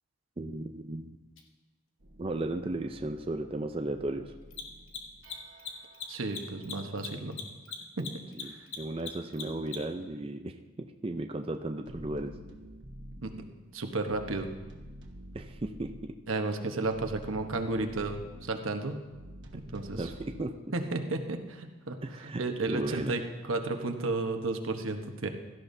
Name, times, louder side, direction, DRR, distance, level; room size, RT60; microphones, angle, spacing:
voice 1, 0.4-1.2 2.2-4.3 8.3-12.3 15.3-16.2 20.0-20.5 22.0-23.1, right 2 dB, 25° right, 4 dB, 0.5 m, -35 dB
Mechanisms, 1.4-1.5 4.4-10.0, left 6 dB, 80° left, 1.4 m, -40 dB
sound 1, 2.0-7.0 9.7-9.8 10.0-10.1 11.9-13.5 14.1-16.0 16.9-18.6 19.1-20.4, equal, 65° right, 1.2 m, -49 dB
voice 2, 6.1-7.4 8.0-8.1 13.2-13.3 13.7-14.5 16.3-19.0 19.5-20.0 20.7-22.0 22.4-23.2 23.5-25.3, right 2 dB, 85° right, 5 dB, 1.1 m, -32 dB
16.5 x 12.5 x 2.7 m, 1.2 s
head